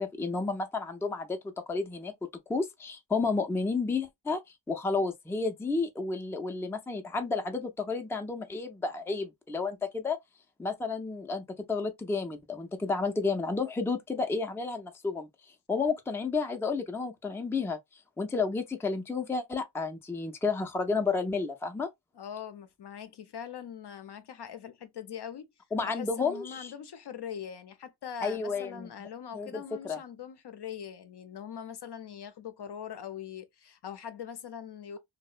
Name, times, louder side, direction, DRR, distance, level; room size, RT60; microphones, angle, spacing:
voice 1, 0.0-2.1 2.5-4.4 4.7-10.2 10.6-15.3 15.7-17.8 18.2-21.9 25.7-26.7 28.2-28.9 29.3-30.0, left 4 dB, 5° left, 0.4 m, -31 dB
voice 2, 22.1-25.5 25.8-35.0, left 8 dB, 60° left, 0.5 m, -42 dB
2.8 x 2.1 x 2.4 m
wide cardioid pair, 95°, 45 cm